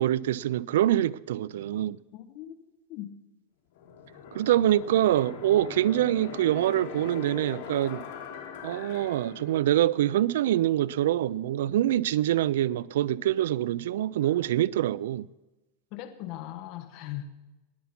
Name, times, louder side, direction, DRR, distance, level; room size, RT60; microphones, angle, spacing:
voice 1, 0.0-2.0 4.3-8.1 8.6-15.3, right 12 dB, 80° right, 0.4 m, -25 dB
voice 2, 2.1-3.1 15.9-17.3, left 13 dB, 45° left, 1.1 m, -39 dB
sound 1, 3.8-14.4, left 6 dB, 60° left, 2.7 m, -43 dB
20.0 x 8.4 x 5.9 m
supercardioid pair, 155°, 0 cm